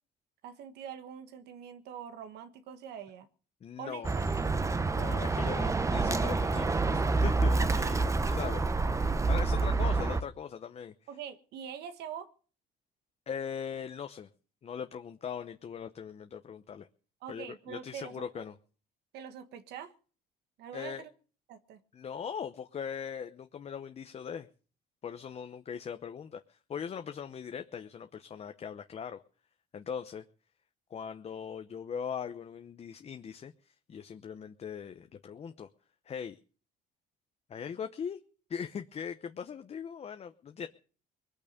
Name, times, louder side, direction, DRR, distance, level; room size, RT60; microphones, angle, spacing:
voice 1, 0.4-3.3 3.8-4.6 11.1-12.3 17.2-18.4 19.1-19.9 20.6-21.1 21.5-21.8, right 8 dB, 80° right, 1.6 m, -44 dB
voice 2, 3.6-4.1 4.9-10.9 13.3-14.3 14.6-16.9 17.3-18.5 20.7-21.0 21.9-24.5 25.0-29.2 29.7-30.2 30.9-35.7 36.1-36.4 37.5-38.2 38.5-40.7, left 7 dB, 40° left, 0.9 m, -40 dB
Bird, 4.0-10.2, right 3 dB, 20° right, 0.9 m, -28 dB
21.0 x 8.8 x 6.7 m
cardioid pair, 110°, 17 cm